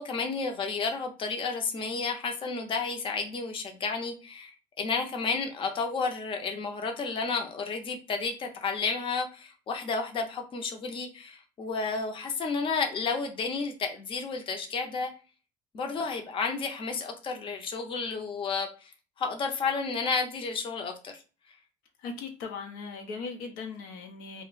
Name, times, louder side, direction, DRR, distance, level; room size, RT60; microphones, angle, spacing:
voice 1, 0.0-4.5 4.8-15.1 15.7-18.9 19.2-21.1, left 4 dB, 40° left, 4 dB, 0.6 m, -31 dB
voice 2, 22.0-24.4, left 4 dB, 85° left, 3 dB, 0.6 m, -38 dB
2.4 x 2.1 x 3.8 m, 0.34 s
cardioid pair, 110°, 14 cm